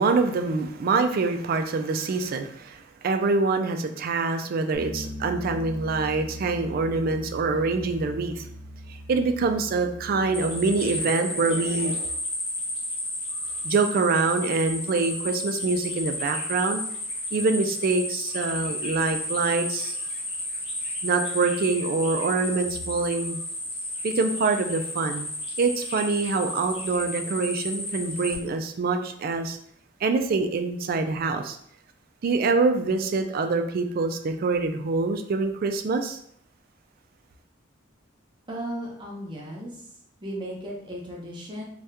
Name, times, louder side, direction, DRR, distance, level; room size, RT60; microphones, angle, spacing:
voice 1, 0.0-8.5 8.9-12.1 13.6-16.8 17.3-20.0 21.0-23.4 24.0-25.3 25.6-29.6 30.0-31.6 32.2-36.2, right 3 dB, 50° right, 7 dB, 0.3 m, -25 dB
Bass guitar, 4.7-11.0, equal, 50° left, 0.6 m, -40 dB
sound 1, 10.3-28.3, left 1 dB, 30° left, 0.9 m, -32 dB
voice 2, 38.5-39.9 40.2-41.6, equal, 25° right, -3 dB, 0.8 m, -35 dB
2.8 x 2.3 x 3.4 m, 0.68 s
head